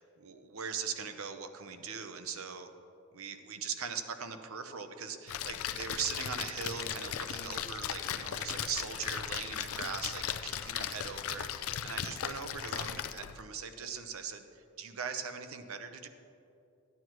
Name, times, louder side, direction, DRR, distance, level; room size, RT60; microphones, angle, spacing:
voice 1, 0.0-2.7 3.1-16.1, right 6 dB, 80° right, 8 dB, 0.7 m, -40 dB
Splash splatter, 5.3-13.4, left 9 dB, 80° left, 0.4 m, -37 dB
14.5 x 9.3 x 3.1 m, 2.7 s
head